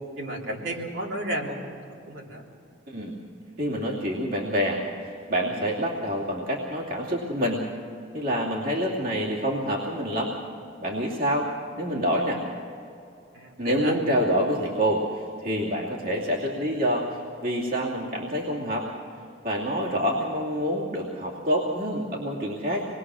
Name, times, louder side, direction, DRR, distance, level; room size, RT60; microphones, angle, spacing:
voice 1, 0.2-1.8 2.1-2.4 13.3-14.0, right 1 dB, 75° right, -2 dB, 3.5 m, -32 dB
voice 2, 2.9-3.2 3.6-7.6 8.1-10.4 10.8-11.5 11.8-12.4 13.6-18.9 19.4-22.9, equal, 45° right, -4 dB, 2.6 m, -27 dB
27.0 x 20.5 x 6.3 m, 2.5 s
head